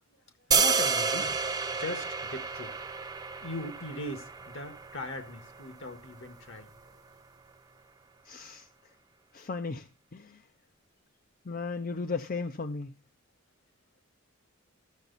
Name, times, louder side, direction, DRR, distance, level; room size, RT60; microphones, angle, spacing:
voice 1, 0.5-1.3 1.7-2.8 3.4-6.8, left 1 dB, 65° left, 1.7 m, -39 dB
sound 1, 0.5-6.6, right 5 dB, 20° right, 0.8 m, -31 dB
voice 2, 8.3-8.7 9.3-9.9 10.1-10.4 11.5-12.9, left 4 dB, 40° left, 0.5 m, -35 dB
13.5 x 7.0 x 4.0 m
head